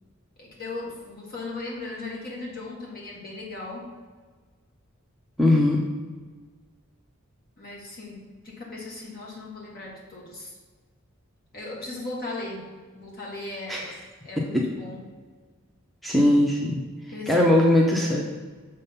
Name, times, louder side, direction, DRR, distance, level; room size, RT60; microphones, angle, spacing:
voice 1, 0.4-4.0 7.6-10.5 11.5-13.9 14.3-15.1 17.1-18.2, left 2 dB, 45° left, -3 dB, 1.7 m, -37 dB
voice 2, 5.4-5.8 13.7-13.8 16.0-16.8 17.3-18.2, left 1 dB, ahead, -3 dB, 0.6 m, -19 dB
6.6 x 3.7 x 5.4 m, 1.4 s
head